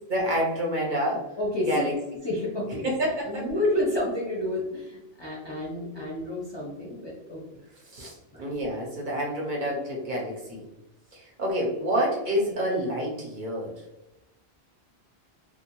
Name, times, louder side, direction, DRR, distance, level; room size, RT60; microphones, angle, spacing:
voice 1, 0.1-1.3 1.6-1.9 2.8-3.5 5.9-6.0 7.9-10.7 11.1-13.7, equal, 55° right, -2 dB, 0.8 m, -28 dB
voice 2, 1.4-1.9 2.2-2.9 3.3-7.6 8.3-8.4, left 1 dB, 35° left, -6 dB, 0.5 m, -30 dB
2.6 x 2.4 x 2.9 m, 0.92 s
omnidirectional pair, 1.1 m